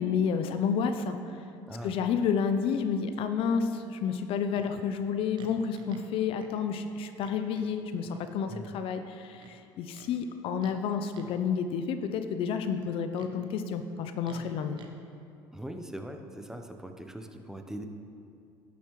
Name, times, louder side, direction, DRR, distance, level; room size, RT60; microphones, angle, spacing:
voice 1, 0.0-1.4 1.8-14.8, left 6 dB, 60° left, 8 dB, 0.5 m, -30 dB
voice 2, 1.7-2.0 8.5-8.7 15.5-17.9, right 1 dB, 5° right, 5 dB, 0.7 m, -41 dB
Livestock farm animals working animals, 4.5-4.7 5.4-6.1 6.4-6.5 7.2-7.7 8.1-8.3 9.4-10.1 10.6-10.8 11.1-11.4 12.8-13.4 14.2-14.9, right 4 dB, 50° right, 0.9 m, -52 dB
11.5 x 7.2 x 3.1 m, 2.5 s
supercardioid pair, 80°, 10 cm